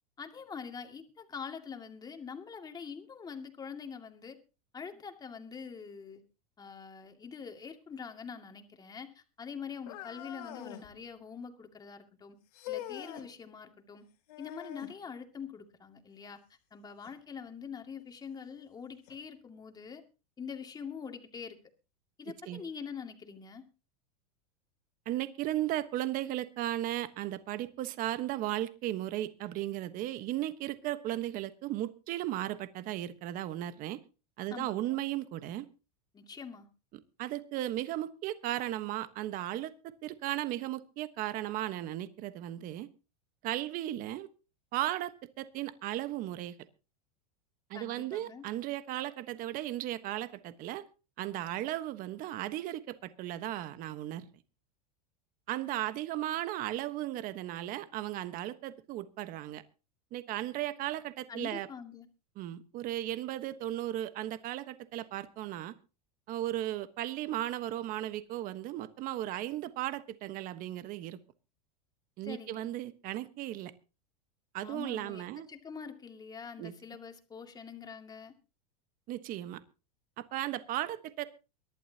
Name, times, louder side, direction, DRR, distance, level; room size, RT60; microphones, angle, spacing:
voice 1, 0.2-4.4 4.7-6.2 6.6-12.4 12.7-14.0 14.4-16.4 16.7-20.0 20.4-21.6 22.2-23.6 34.5-35.0 36.1-36.7 47.7-48.4 61.3-62.1 72.2-72.7 74.6-78.3, left 6 dB, 20° left, 5 dB, 2.3 m, -44 dB
sound 1, 9.9-10.9 12.5-13.3 14.3-15.0 17.0-17.2 18.0-18.1 19.1-19.2, left 11 dB, 75° left, 3.5 m, -43 dB
voice 2, 22.3-22.6 25.1-34.0 34.4-35.7 37.2-39.7 40.0-42.9 43.4-44.3 44.7-46.5 47.7-50.8 51.2-54.3 55.5-59.6 60.1-61.7 62.4-65.7 66.3-71.2 72.2-73.7 74.5-75.5 76.6-76.7 79.1-79.6 80.2-81.2, right 14 dB, 45° right, 12 dB, 1.3 m, -36 dB
23.5 x 11.5 x 2.9 m, 0.32 s
supercardioid pair, 125°, 20 cm